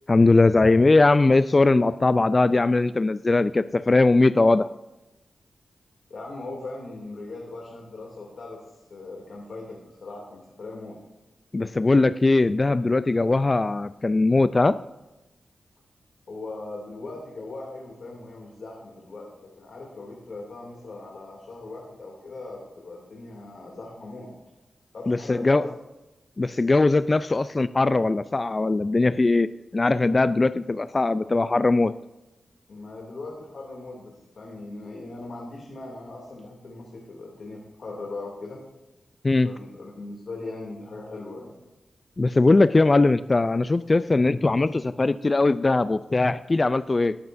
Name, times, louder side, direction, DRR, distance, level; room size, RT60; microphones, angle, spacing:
voice 1, 0.1-4.7 11.5-14.8 25.1-25.7 26.4-31.9 39.2-39.5 42.2-47.2, left 3 dB, 40° left, 14 dB, 0.3 m, -20 dB
voice 2, 6.1-8.6 8.9-11.0 16.3-24.3 24.9-25.7 32.7-38.6 39.4-41.5, left 2 dB, 70° left, -2 dB, 2.6 m, -39 dB
18.5 x 7.9 x 2.6 m, 1.0 s
cardioid pair, 50°, 0 cm